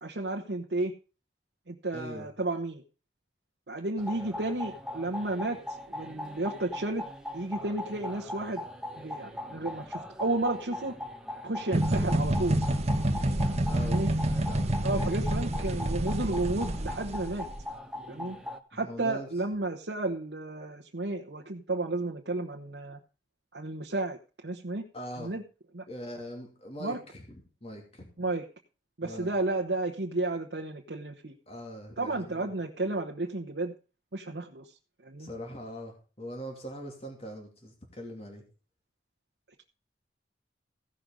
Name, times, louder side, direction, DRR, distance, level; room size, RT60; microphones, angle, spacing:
voice 1, 0.0-0.9 1.7-2.8 3.7-5.6 5.9-7.0 7.3-8.6 9.0-10.9 11.4-12.6 13.8-14.1 14.8-17.5 18.1-18.4 18.7-23.0 23.5-24.2 24.4-24.8 25.2-25.4 25.7-25.8 26.8-27.0 28.2-28.5 29.0-31.3 32.0-33.7 34.1-34.7 35.0-35.3, right 2 dB, 70° right, 1 dB, 1.1 m, -32 dB
voice 2, 1.9-2.3 13.6-14.0 14.5-15.1 18.7-19.3 24.9-25.3 25.9-28.1 29.0-29.3 31.5-32.5 35.2-38.4, equal, 35° left, 1 dB, 2.6 m, -42 dB
sound 1, 4.0-18.6, left 1 dB, 5° right, 1.1 m, -40 dB
sound 2, 11.7-17.6, right 1 dB, 40° right, 1.2 m, -28 dB
15.5 x 6.3 x 5.2 m, 0.35 s
head